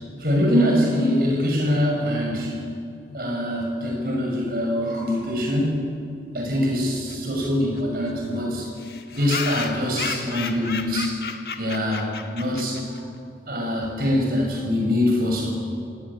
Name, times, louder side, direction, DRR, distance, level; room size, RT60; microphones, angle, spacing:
voice 1, 0.2-2.6 3.1-5.8 6.3-8.7 9.1-11.2 11.6-13.0 13.5-15.5, left 1 dB, 55° right, -1 dB, 6.6 m, -23 dB
sound 1, 7.1-7.2 7.4-7.5 7.8-7.9 8.1-8.2 8.8-13.0, left 5 dB, 60° left, 1.5 m, -33 dB
26.0 x 18.5 x 8.8 m, 2.5 s
head